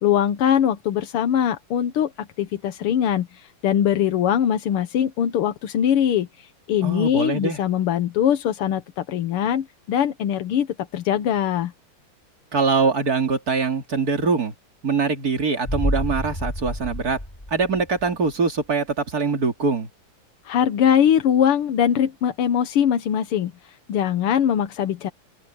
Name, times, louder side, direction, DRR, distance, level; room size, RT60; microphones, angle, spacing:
voice 1, 0.0-11.7 20.5-25.1, left 9 dB, 90° left, 2.0 m, -22 dB
voice 2, 6.8-7.6 12.5-14.5 14.8-17.2 17.5-19.9, right 4 dB, 45° right, 3.0 m, -23 dB
sound 1, 15.6-18.3 18.6-18.7, left 1 dB, 15° left, 5.4 m, -29 dB
open air
omnidirectional pair, 2.4 m